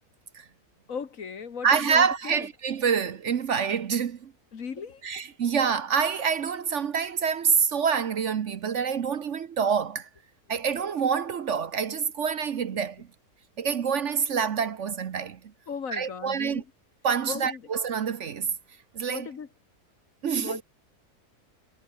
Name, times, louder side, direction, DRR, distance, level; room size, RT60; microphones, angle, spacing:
voice 1, 0.9-2.5 4.5-5.0 15.7-16.6 17.2-17.6 19.1-19.5 20.4-20.6, left 6 dB, 60° left, 1.9 m, -37 dB
voice 2, 1.6-4.3 5.0-10.1 10.5-13.1 13.6-15.4 15.9-16.6 17.0-18.5 18.9-19.3 20.2-20.6, right 6 dB, 55° right, 1.1 m, -26 dB
omnidirectional pair, 1.6 m